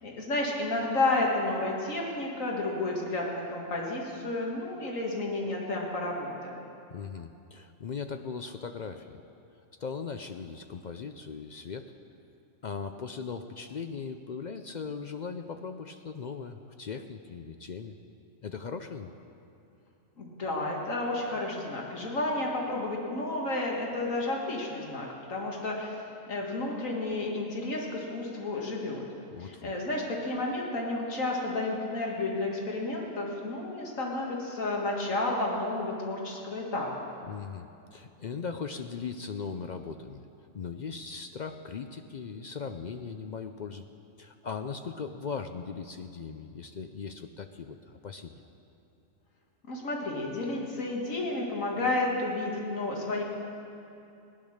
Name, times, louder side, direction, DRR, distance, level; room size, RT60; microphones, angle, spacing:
voice 1, 0.0-6.7 20.2-29.0 29.4-37.0 49.7-53.2, left 2 dB, 85° left, -1 dB, 2.2 m, -31 dB
voice 2, 6.9-9.2 9.8-11.9 12.6-17.9 18.4-19.1 29.3-29.7 37.3-40.3 40.5-43.9 44.2-48.4, left 5 dB, 60° left, 7 dB, 0.4 m, -39 dB
17.5 x 10.5 x 6.5 m, 2.7 s
omnidirectional pair, 1.3 m